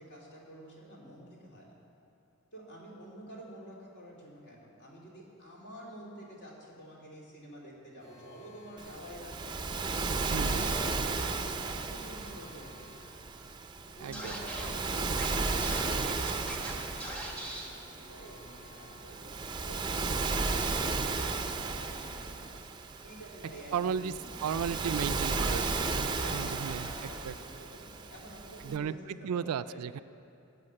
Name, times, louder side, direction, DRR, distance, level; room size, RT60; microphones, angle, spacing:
voice 1, 0.0-1.8 2.5-9.8 10.1-12.8 13.9-19.4 19.6-22.5 23.0-24.7 25.8-29.8, right 1 dB, 50° left, -4 dB, 3.1 m, -49 dB
Alarm, 8.0-19.9 25.4-26.9, left 2 dB, 30° left, 1.9 m, -56 dB
Waves surf, 8.8-28.8, right 3 dB, 20° right, 0.5 m, -34 dB
voice 2, 10.3-10.7 14.0-14.4 23.7-24.1 24.4-27.3 28.6-29.0 29.2-30.0, right 7 dB, 85° right, 15 dB, 0.3 m, -35 dB
Scratching (performance technique), 14.1-14.7 15.2-15.3 15.6-16.7 17.0-17.7, right 1 dB, 5° left, 1.3 m, -40 dB
15.5 x 8.4 x 6.5 m, 2.7 s
head